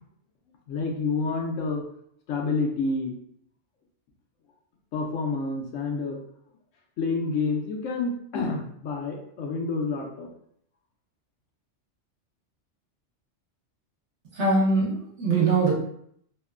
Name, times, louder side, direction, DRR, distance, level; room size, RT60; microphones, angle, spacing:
voice 1, 0.7-1.8 2.3-3.1 4.9-6.2 7.0-10.3, left 4 dB, 85° left, 1 dB, 1.0 m, -28 dB
voice 2, 14.4-15.8, right 3 dB, 70° right, -4 dB, 1.2 m, -22 dB
3.0 x 2.1 x 2.3 m, 0.68 s
omnidirectional pair, 1.3 m